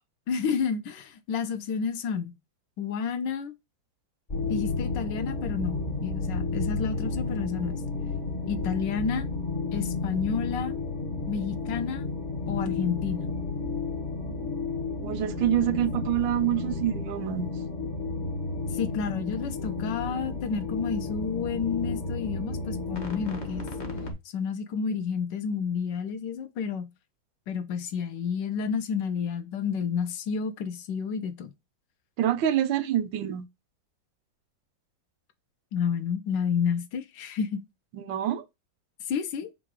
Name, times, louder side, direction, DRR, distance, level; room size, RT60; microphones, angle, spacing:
voice 1, 0.3-2.3 2.8-3.5 4.5-7.8 8.5-9.3 9.7-10.7 11.3-12.1 12.5-13.3 15.7-15.8 18.7-23.7 24.3-26.8 27.5-31.5 35.7-37.6 39.1-39.5, left 6 dB, 75° left, 1.3 m, -30 dB
sound 1, 4.3-24.1, left 3 dB, 40° left, 0.7 m, -32 dB
voice 2, 15.0-17.5 32.2-33.5 37.9-38.4, right 11 dB, 85° right, 1.4 m, -26 dB
3.8 x 2.6 x 4.6 m
omnidirectional pair, 2.0 m